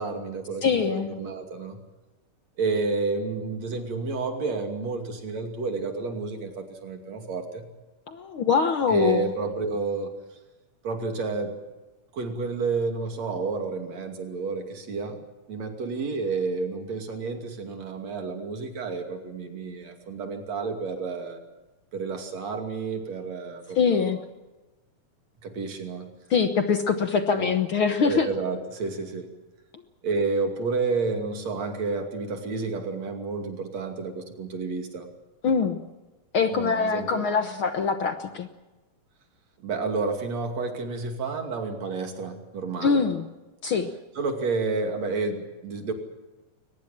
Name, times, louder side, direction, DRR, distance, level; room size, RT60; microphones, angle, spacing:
voice 1, 0.0-1.8 2.6-7.7 8.9-10.1 10.8-11.6 12.1-15.2 15.5-21.4 21.9-24.1 25.4-26.1 27.4-27.6 28.0-29.3 30.0-35.1 36.5-37.3 39.6-43.1 44.2-45.9, right 4 dB, 55° right, 5 dB, 3.7 m, -30 dB
voice 2, 0.6-1.1 8.1-9.3 23.7-24.2 26.3-28.3 35.4-35.8 36.3-38.5 42.8-43.2 43.6-43.9, left 5 dB, 60° left, 7 dB, 1.4 m, -23 dB
23.0 x 20.0 x 7.5 m, 1.1 s
omnidirectional pair, 3.7 m